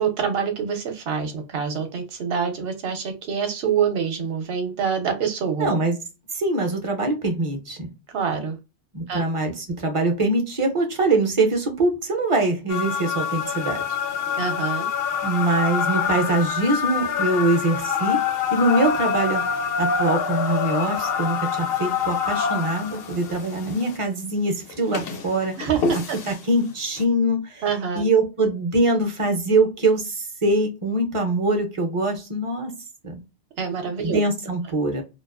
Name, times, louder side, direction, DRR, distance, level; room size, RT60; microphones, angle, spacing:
voice 1, 0.0-5.7 8.1-8.6 9.1-9.2 14.3-14.9 25.6-26.2 27.6-28.0 33.6-34.2, right 7 dB, 60° right, 6 dB, 0.8 m, -26 dB
voice 2, 5.6-6.0 6.3-7.9 8.9-13.8 15.2-18.2 18.5-19.4 19.8-25.6 26.3-27.6 27.9-32.7 33.0-33.2 34.0-35.0, right 2 dB, 40° right, 4 dB, 0.5 m, -23 dB
sound 1, 12.7-24.0 24.7-26.4 27.0-27.1, left 6 dB, 65° left, 0.7 m, -26 dB
2.4 x 2.3 x 2.3 m, 0.27 s
omnidirectional pair, 1.2 m